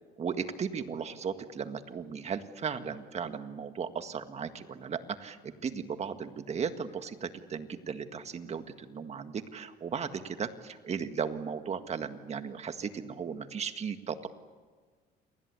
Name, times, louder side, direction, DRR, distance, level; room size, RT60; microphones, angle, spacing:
voice 1, 0.2-14.3, right 6 dB, 40° right, 9 dB, 1.8 m, -36 dB
28.5 x 20.5 x 8.4 m, 1.5 s
cardioid pair, 110°, 17 cm